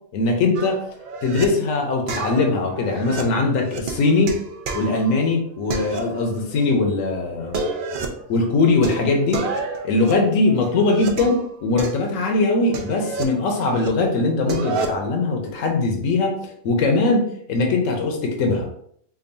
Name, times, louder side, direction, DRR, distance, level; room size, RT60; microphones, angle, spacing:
voice 1, 0.1-0.8 1.2-4.4 4.7-7.6 8.3-9.4 9.8-18.7, left 3 dB, 70° left, 2 dB, 1.1 m, -21 dB
sound 1, 0.5-1.4 2.1-5.3 5.7-6.6 6.8-6.9 7.4-8.3 8.8-11.4 11.8-13.9 14.2-15.1, right 3 dB, 75° right, 0.4 m, -30 dB
5.3 x 2.4 x 2.6 m, 0.65 s
omnidirectional pair, 1.5 m